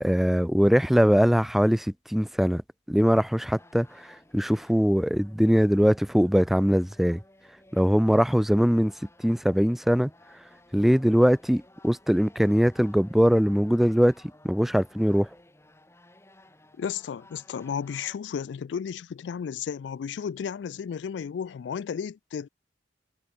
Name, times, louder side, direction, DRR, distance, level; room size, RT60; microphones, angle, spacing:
voice 1, 0.0-2.6 2.9-7.2 7.7-8.9 9.2-10.1 10.7-14.1 14.4-15.3, equal, ahead, 0.3 m, -22 dB
sound 1, 3.6-18.2, left 1 dB, 15° left, 3.8 m, -56 dB
voice 2, 16.8-22.5, left 7 dB, 75° left, 0.3 m, -33 dB
head